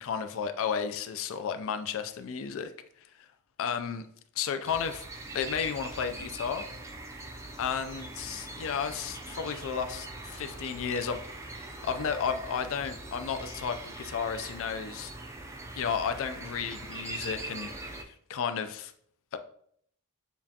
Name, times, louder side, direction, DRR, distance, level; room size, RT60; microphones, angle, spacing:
voice 1, 0.0-2.7 3.6-4.0 4.4-5.0 5.3-6.6 7.6-11.2 11.5-15.1 15.8-18.0 18.3-18.9 19.3-19.4, left 6 dB, 65° left, 9 dB, 0.4 m, -33 dB
sound 1, 4.7-18.0, right 2 dB, 15° right, 0.4 m, -42 dB
7.0 x 2.4 x 2.8 m, 0.65 s
head